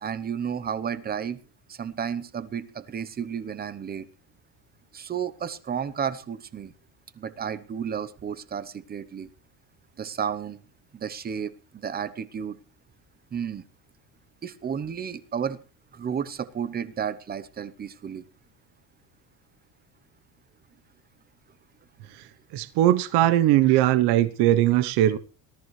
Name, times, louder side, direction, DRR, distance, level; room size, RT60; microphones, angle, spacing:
voice 1, 0.0-1.4 1.7-4.1 4.9-6.7 7.2-9.3 10.0-10.6 10.9-12.6 13.3-13.6 14.4-15.6 15.9-18.2, right 7 dB, 20° right, 0.8 m, -32 dB
voice 2, 22.5-25.2, right 13 dB, 60° right, 1.0 m, -20 dB
19.0 x 13.5 x 3.2 m
cardioid pair, 160°, 45 cm